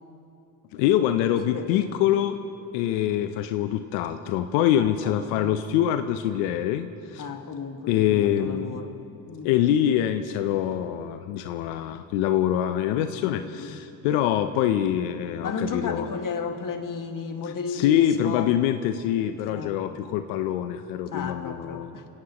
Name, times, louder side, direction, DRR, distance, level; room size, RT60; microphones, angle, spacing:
voice 1, 0.7-2.4 2.7-7.2 7.9-8.8 9.4-16.1 17.7-21.9, left 11 dB, 85° left, 9 dB, 0.7 m, -24 dB
voice 2, 1.4-1.9 4.7-5.6 7.2-9.0 9.3-9.5 13.1-13.8 15.4-18.5 19.5-19.8 21.1-22.1, left 5 dB, 40° left, 4 dB, 1.9 m, -34 dB
26.0 x 17.5 x 3.0 m, 2.8 s
supercardioid pair, 65°, 47 cm